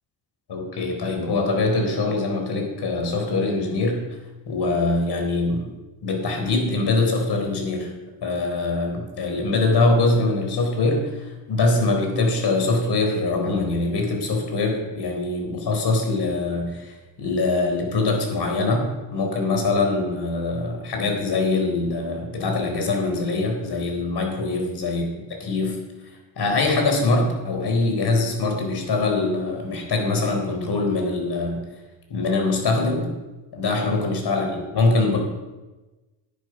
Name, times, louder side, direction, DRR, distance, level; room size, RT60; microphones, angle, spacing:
voice 1, 0.5-4.1 4.5-5.7 6.0-7.9 8.2-25.0 25.4-25.8 26.4-31.6 32.1-33.1 33.5-34.5 34.7-35.2, left 3 dB, 55° left, 2 dB, 4.2 m, -23 dB
10.0 x 8.9 x 6.3 m, 1.1 s
supercardioid pair, 70°, 48 cm